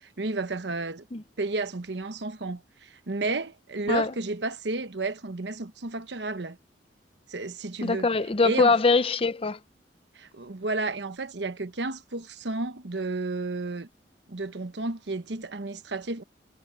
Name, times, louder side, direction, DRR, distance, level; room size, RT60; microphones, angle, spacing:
voice 1, 0.2-1.0 1.4-6.6 7.3-8.1 8.4-8.8 10.2-13.9 14.3-16.2, right 2 dB, 75° right, 1.1 m, -32 dB
voice 2, 7.8-9.6, left 4 dB, 30° left, 0.7 m, -23 dB
head